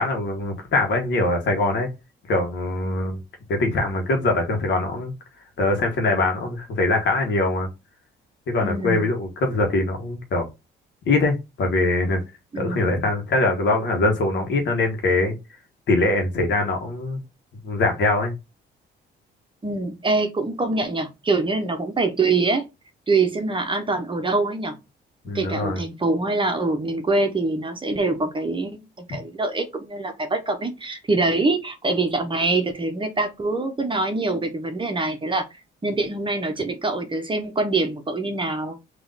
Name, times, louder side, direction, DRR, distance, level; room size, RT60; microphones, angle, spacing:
voice 1, 0.0-1.9 2.3-3.2 3.5-5.1 5.6-7.7 8.5-10.5 11.1-12.2 12.5-15.3 15.9-17.2 17.6-18.3 25.3-25.8 29.1-29.2, left 2 dB, 65° left, 1.6 m, -22 dB
voice 2, 8.6-9.1 12.5-13.0 19.6-22.7 23.1-24.8 25.3-35.4 35.8-38.8, right 3 dB, 25° right, 1.0 m, -24 dB
3.8 x 3.0 x 4.0 m
cardioid pair, 90°, 20 cm